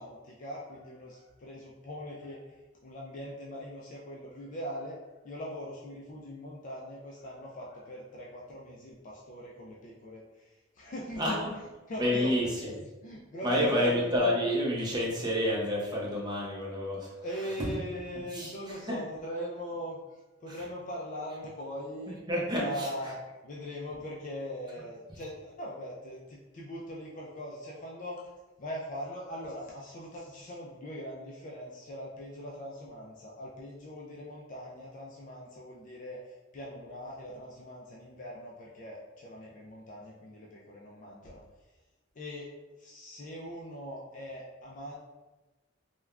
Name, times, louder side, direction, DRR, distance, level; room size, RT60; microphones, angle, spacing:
voice 1, 0.0-5.0 5.2-10.2 10.8-12.7 13.0-13.9 17.2-20.0 20.4-22.2 22.6-23.2 23.4-28.2 28.6-36.2 36.5-41.4 42.2-42.5 42.8-45.0, equal, 40° left, -3 dB, 0.4 m, -41 dB
voice 2, 12.0-12.7 13.4-17.1 17.6-17.7 18.3-19.0 20.5-20.6 22.3-23.1, equal, 20° right, -4 dB, 0.6 m, -29 dB
3.3 x 2.2 x 2.3 m, 1.1 s
head